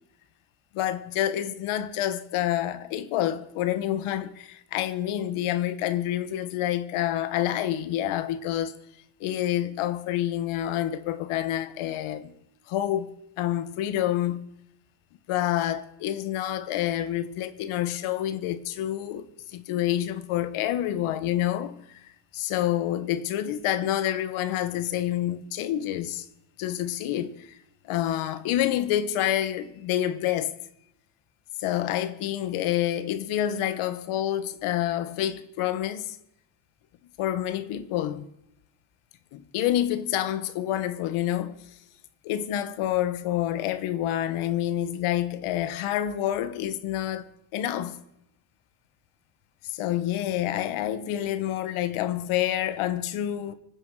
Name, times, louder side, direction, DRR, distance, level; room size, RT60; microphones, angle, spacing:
voice 1, 0.7-8.7 9.2-12.3 12.7-14.4 15.3-19.3 19.5-22.0 22.3-26.2 26.6-27.5 27.8-30.5 31.6-36.2 37.2-38.3 39.3-41.5 42.2-48.0 49.6-53.5, left 12 dB, 85° left, 1.6 m, -28 dB
25.5 x 9.9 x 5.0 m
cardioid pair, 175°, 48 cm